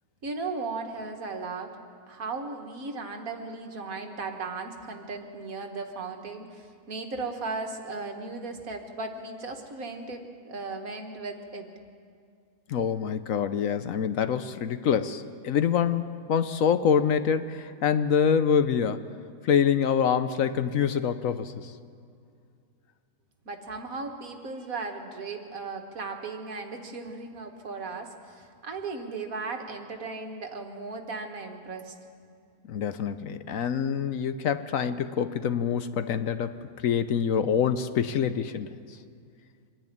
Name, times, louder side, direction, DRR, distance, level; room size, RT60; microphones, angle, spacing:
voice 1, 0.2-1.7 2.1-11.7 23.5-31.9, right 3 dB, 65° right, 4 dB, 2.0 m, -36 dB
voice 2, 12.7-19.1 19.4-21.7 32.7-36.5 36.8-38.8, left 7 dB, 65° left, 11 dB, 1.0 m, -26 dB
24.5 x 10.5 x 9.9 m, 2.3 s
omnidirectional pair, 1.6 m